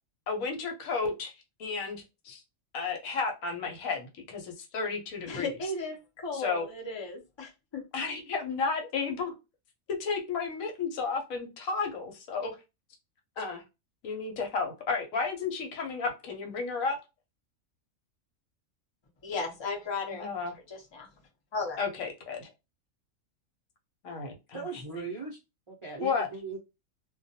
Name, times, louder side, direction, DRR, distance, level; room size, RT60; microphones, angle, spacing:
voice 1, 0.3-1.3 1.6-2.4 2.7-5.5 6.3-6.6 7.9-9.3 10.0-12.6 13.4-13.6 14.0-17.0 20.0-20.5 21.8-22.5 24.0-24.3 26.0-26.3, left 4 dB, 75° left, 3 dB, 1.1 m, -32 dB
voice 2, 5.3-7.8 19.2-20.3 20.7-21.1 21.5-21.8, left 3 dB, 30° left, 0 dB, 0.5 m, -35 dB
voice 3, 24.5-25.4 25.7-26.6, right 4 dB, 40° right, -4 dB, 0.4 m, -38 dB
2.3 x 2.2 x 2.6 m, 0.26 s
omnidirectional pair, 1.4 m